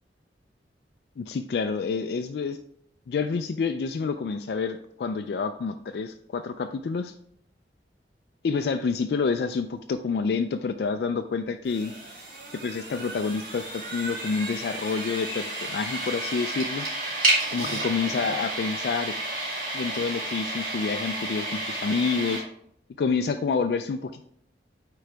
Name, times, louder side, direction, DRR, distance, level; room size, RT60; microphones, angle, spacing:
voice 1, 1.2-2.6 3.1-7.1 8.4-11.9 12.5-16.9 17.5-19.1 19.7-22.4 23.0-24.2, left 5 dB, 60° left, 7 dB, 0.3 m, -28 dB
sound 1, 11.7-22.4, right 2 dB, 50° right, 2.5 m, -31 dB
9.3 x 3.8 x 3.3 m, 0.70 s
head